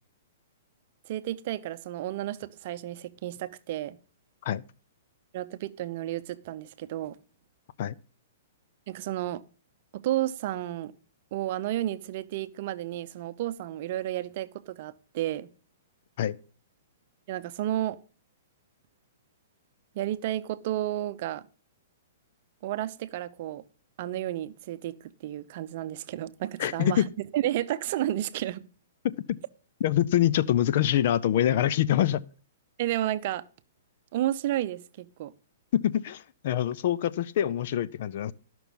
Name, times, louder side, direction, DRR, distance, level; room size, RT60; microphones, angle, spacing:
voice 1, 1.0-4.0 5.3-7.2 8.9-9.4 9.9-10.9 11.3-15.5 17.3-18.0 19.9-21.5 22.6-23.6 24.0-27.0 27.3-28.6 32.8-33.4 34.1-35.3, right 13 dB, 45° right, 0.7 m, -32 dB
voice 2, 26.6-27.1 29.8-32.2 35.8-38.3, left 11 dB, 50° left, 0.6 m, -25 dB
13.0 x 6.1 x 5.4 m
hypercardioid pair, 150°, 0 cm